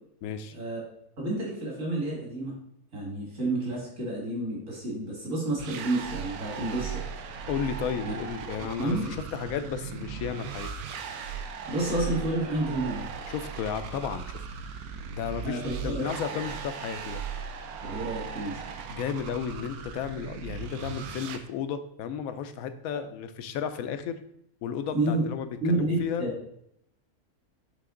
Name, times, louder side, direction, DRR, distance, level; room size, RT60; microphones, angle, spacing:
voice 1, 0.2-0.5 7.5-10.7 13.3-14.4 15.1-17.2 18.9-24.2 24.6-26.3, left 7 dB, 75° left, 10 dB, 1.0 m, -33 dB
voice 2, 1.2-2.5 2.9-7.0 8.0-8.1 8.8-9.1 11.7-13.1 15.4-16.0 16.3-16.4 17.8-18.6 24.9-25.2 25.6-26.4, right 2 dB, 60° right, -4 dB, 2.4 m, -30 dB
sound 1, 5.6-21.4, right 6 dB, 80° right, 1.1 m, -38 dB
8.4 x 3.3 x 3.7 m, 0.75 s
omnidirectional pair, 1.6 m